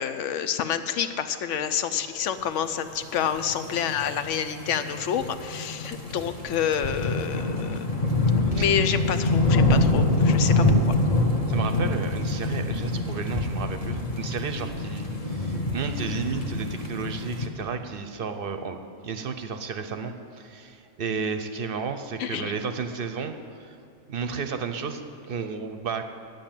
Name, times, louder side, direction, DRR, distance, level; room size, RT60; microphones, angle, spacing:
voice 1, 0.0-7.9 8.4-10.8 22.2-22.5, left 8 dB, 75° left, 10 dB, 0.9 m, -28 dB
sound 1, 3.2-17.5, left 2 dB, 30° left, 1.0 m, -25 dB
voice 2, 11.5-23.8 24.1-26.0, right 5 dB, 55° right, 8 dB, 0.7 m, -33 dB
9.2 x 7.8 x 8.9 m, 2.5 s
omnidirectional pair, 1.3 m